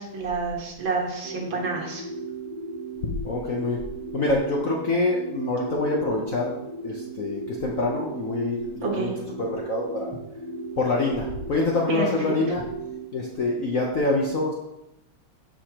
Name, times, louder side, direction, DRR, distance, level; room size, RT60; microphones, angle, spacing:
voice 1, 0.0-2.0 8.8-9.1 11.9-12.0, right 4 dB, 65° right, 0 dB, 2.2 m, -28 dB
sound 1, 1.2-13.0, right 2 dB, 20° right, 0.8 m, -36 dB
voice 2, 3.2-3.8 4.1-6.5 6.8-10.1 10.8-12.6 13.1-14.5, left 2 dB, 55° left, -2 dB, 0.9 m, -26 dB
13.0 x 4.9 x 2.9 m, 0.86 s
omnidirectional pair, 2.3 m